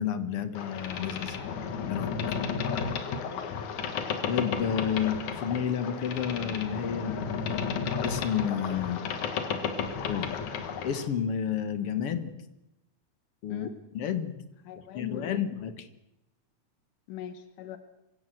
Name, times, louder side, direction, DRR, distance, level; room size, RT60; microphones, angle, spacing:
voice 1, 0.0-1.4 1.8-2.3 4.3-7.4 8.0-9.0 10.1-10.4 10.8-12.3 13.4-13.7 13.9-14.4 14.9-15.9, left 8 dB, 55° left, 11 dB, 2.2 m, -30 dB
Boat Water vehicle, 0.5-11.1, left 6 dB, 70° left, 2.9 m, -33 dB
voice 2, 2.8-3.6 13.5-13.7 14.7-15.4 17.1-17.8, left 12 dB, 90° left, 10 dB, 2.7 m, -40 dB
25.0 x 16.5 x 7.9 m, 0.92 s
omnidirectional pair, 3.6 m